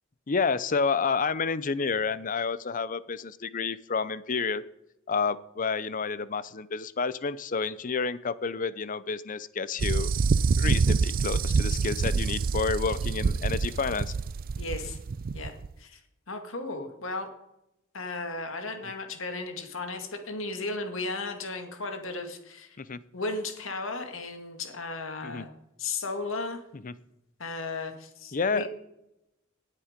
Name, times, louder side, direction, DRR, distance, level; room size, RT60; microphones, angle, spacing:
voice 1, 0.3-4.6 5.1-10.1 10.6-14.1 22.8-23.0 25.2-25.4 26.8-26.9 28.3-28.7, left 5 dB, 40° left, 16 dB, 0.6 m, -29 dB
sound 1, 9.8-15.7, right 4 dB, 45° right, 0.4 m, -26 dB
voice 2, 14.6-15.0 15.3-16.0 16.3-17.3 17.9-22.8 23.1-25.5 25.8-26.6 27.4-28.7, left 3 dB, 75° left, 5 dB, 2.0 m, -35 dB
18.5 x 7.6 x 5.2 m, 0.86 s
head